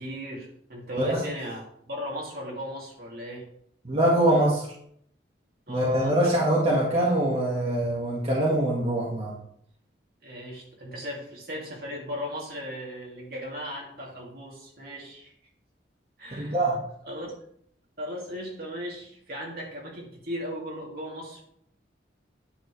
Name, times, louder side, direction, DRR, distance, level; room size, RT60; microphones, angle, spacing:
voice 1, 0.0-3.4 5.7-6.2 10.2-15.3 16.2-16.6 17.0-17.3 18.0-21.4, equal, 55° right, -3 dB, 2.7 m, -36 dB
voice 2, 3.8-4.7 5.7-9.4 16.4-16.8, right 1 dB, 35° right, -6 dB, 1.8 m, -23 dB
9.8 x 7.4 x 3.3 m, 0.69 s
head